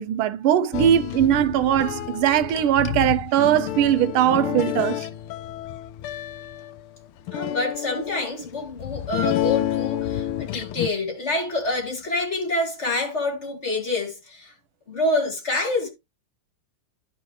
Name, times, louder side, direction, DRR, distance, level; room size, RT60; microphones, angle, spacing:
voice 1, 0.0-5.0, right 11 dB, 85° right, 1.5 m, -20 dB
sound 1, 0.7-10.9, left 12 dB, 90° left, 1.5 m, -29 dB
voice 2, 7.3-14.5 14.9-15.9, left 2 dB, 35° left, 2.4 m, -27 dB
11.0 x 5.8 x 3.1 m
omnidirectional pair, 2.3 m